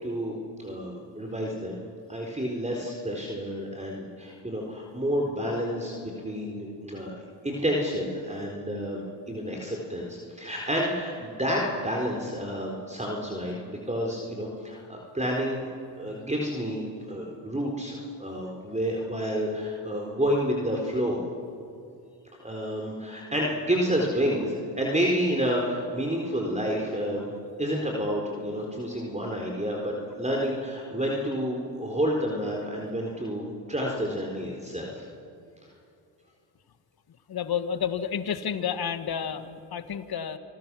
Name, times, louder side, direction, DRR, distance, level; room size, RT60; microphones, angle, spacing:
voice 1, 0.0-1.8 2.1-7.1 7.4-9.0 9.3-15.7 16.0-21.2 22.4-27.3 27.6-35.1, equal, 15° right, -1 dB, 4.2 m, -29 dB
voice 2, 37.3-40.4, left 8 dB, 50° left, 10 dB, 1.7 m, -30 dB
28.0 x 20.0 x 6.3 m, 2.5 s
hypercardioid pair, 50°, 48 cm